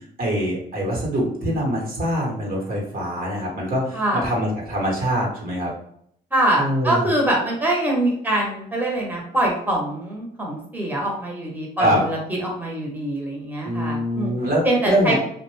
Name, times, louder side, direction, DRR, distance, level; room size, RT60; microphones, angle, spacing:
voice 1, 0.2-5.7 6.6-7.0 11.8-12.0 13.6-15.1, equal, 55° right, -1 dB, 1.1 m, -24 dB
voice 2, 3.9-4.3 6.3-14.3 14.6-15.1, right 1 dB, 10° right, -2 dB, 0.9 m, -24 dB
2.5 x 2.1 x 3.2 m, 0.68 s
cardioid pair, 70°, 18 cm